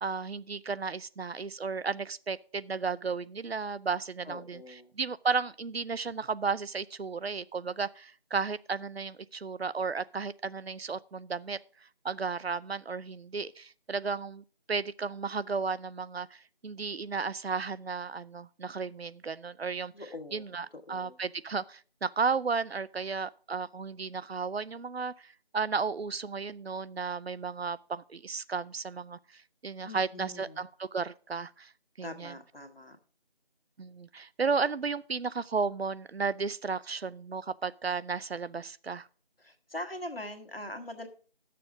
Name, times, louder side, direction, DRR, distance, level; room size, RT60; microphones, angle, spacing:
voice 1, 0.0-11.6 12.0-19.9 20.3-31.7 32.0-32.3 33.8-39.1, right 5 dB, 80° right, 0.6 m, -34 dB
voice 2, 4.2-4.9 19.9-21.2 29.8-30.6 32.0-33.0 39.4-41.1, left 1 dB, 70° left, 1.6 m, -42 dB
10.5 x 6.8 x 4.9 m
figure-of-eight pair, 180°, 30 cm